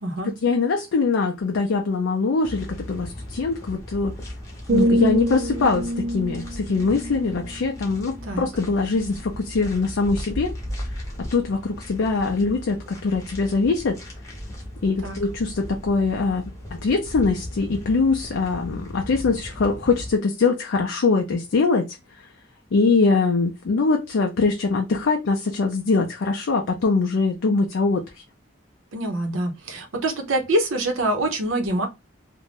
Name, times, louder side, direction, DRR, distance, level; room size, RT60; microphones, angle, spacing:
voice 1, 0.2-4.1 4.7-10.5 11.2-14.0 14.8-22.0 22.7-28.2, left 4 dB, 75° left, 0.4 m, -23 dB
sound 1, 2.4-20.1, left 1 dB, 15° left, 0.7 m, -37 dB
sound 2, 4.7-8.6 9.1-9.4, right 1 dB, 40° right, 0.3 m, -26 dB
voice 2, 28.9-31.9, right 1 dB, 85° right, 0.7 m, -25 dB
2.5 x 2.1 x 3.3 m
head